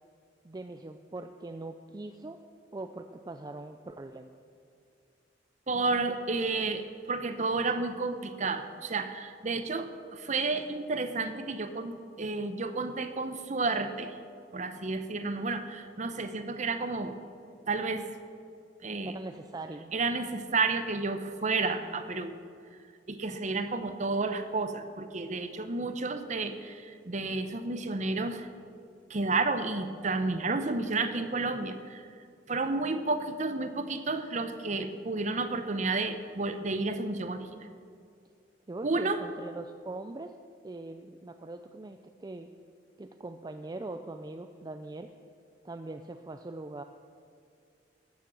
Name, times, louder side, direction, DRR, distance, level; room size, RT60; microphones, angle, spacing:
voice 1, 0.4-2.4 2.7-4.4 19.0-19.9 38.7-40.3 40.6-42.5 43.0-45.1 45.6-46.8, right 2 dB, 20° right, 6 dB, 0.4 m, -41 dB
voice 2, 5.7-14.1 14.5-17.1 17.7-18.1 18.8-19.1 19.9-22.3 23.1-28.5 29.1-32.0 32.5-37.5 38.8-39.2, right 3 dB, 40° right, 9 dB, 0.8 m, -31 dB
13.0 x 7.3 x 7.6 m, 2.4 s
head